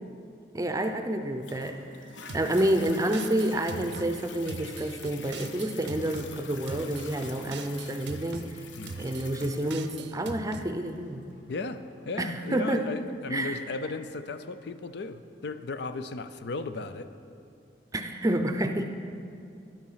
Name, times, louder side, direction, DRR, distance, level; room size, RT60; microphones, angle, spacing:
voice 1, 0.5-1.8 2.3-8.4 9.0-11.2 12.2-12.8 13.3-13.6 17.9-18.9, right 1 dB, 20° right, 6 dB, 0.6 m, -29 dB
Toilet flush, 1.4-14.4 15.0-15.1, left 5 dB, 80° left, 0.8 m, -47 dB
sound 1, 2.3-4.1 4.5-6.3 6.7-8.5 8.9-10.7, right 4 dB, 65° right, 0.5 m, -41 dB
voice 2, 11.5-17.1, left 3 dB, 60° left, 11 dB, 0.5 m, -35 dB
11.0 x 8.9 x 5.7 m, 2.4 s
head